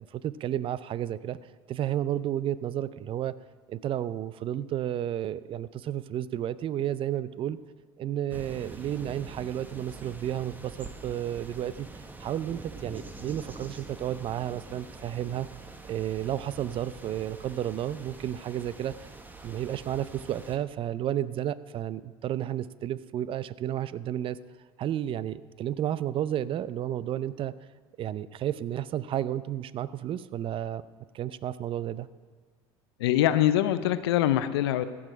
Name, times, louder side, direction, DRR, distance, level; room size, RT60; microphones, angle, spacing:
voice 1, 0.0-1.4 1.7-3.4 3.7-7.6 8.0-11.9 12.2-15.5 15.9-18.9 19.4-24.4 24.8-27.5 28.0-30.8 31.1-32.1, right 11 dB, 40° right, 17 dB, 0.4 m, -32 dB
sound 1, 8.3-20.6, right 3 dB, 15° right, 1.0 m, -45 dB
voice 2, 33.0-34.8, left 12 dB, 80° left, 13 dB, 0.5 m, -23 dB
15.0 x 6.3 x 4.9 m, 1.5 s
hypercardioid pair, 75°, 13 cm